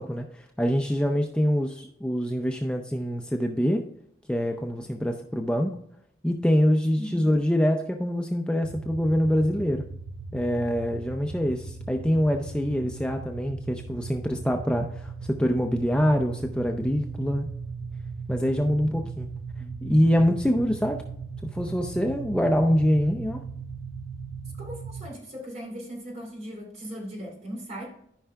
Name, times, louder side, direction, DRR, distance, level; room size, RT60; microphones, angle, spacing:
voice 1, 0.0-3.8 4.3-5.7 6.2-9.8 10.3-17.5 18.3-19.3 19.8-21.0 21.5-23.4, equal, 5° left, 3 dB, 0.5 m, -25 dB
sound 1, 8.6-25.1, right 4 dB, 60° right, 0.7 m, -38 dB
voice 2, 19.6-20.0 24.6-27.9, equal, 40° right, -1 dB, 3.1 m, -39 dB
13.5 x 5.5 x 2.3 m, 0.72 s
head